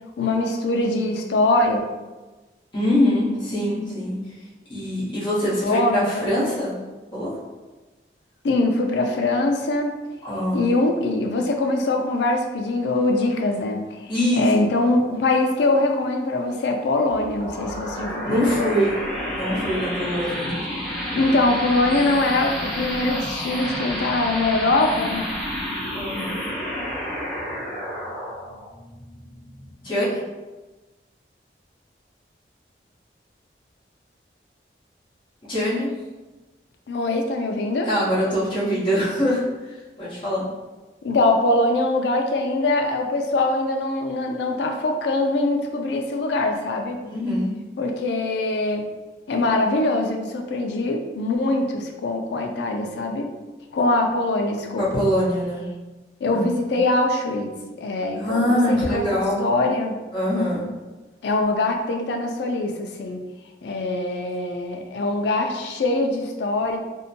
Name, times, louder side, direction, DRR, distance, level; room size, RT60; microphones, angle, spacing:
voice 1, 0.2-1.8 5.6-6.5 8.4-9.9 10.5-18.9 21.1-25.3 36.9-37.9 41.0-47.0 47.8-48.9 49.3-53.3 53.7-55.1 56.2-57.5 57.8-60.0 61.2-63.2 63.6-66.8, left 2 dB, 75° left, 3 dB, 0.4 m, -23 dB
voice 2, 2.7-4.2 4.7-6.8 7.1-7.4 10.2-10.7 14.1-14.5 18.3-18.9 19.4-20.5 25.9-26.4 29.8-30.2 35.5-35.9 37.9-40.5 47.0-47.5 54.8-55.6 56.2-56.7 58.1-59.4 60.1-60.7, equal, 30° left, -11 dB, 1.0 m, -23 dB
sound 1, 17.1-30.2, equal, ahead, 0.8 m, -30 dB
2.6 x 2.1 x 2.7 m, 1.2 s
head